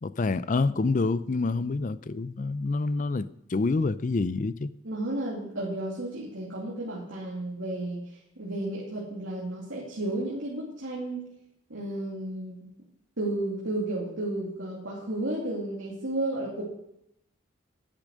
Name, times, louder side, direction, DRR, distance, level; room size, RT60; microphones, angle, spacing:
voice 1, 0.0-4.7, left 3 dB, 40° left, 0.4 m, -27 dB
voice 2, 4.8-8.0 8.4-11.3 11.7-12.7 13.2-16.6, right 1 dB, 75° right, 2.6 m, -32 dB
10.5 x 8.7 x 6.4 m
head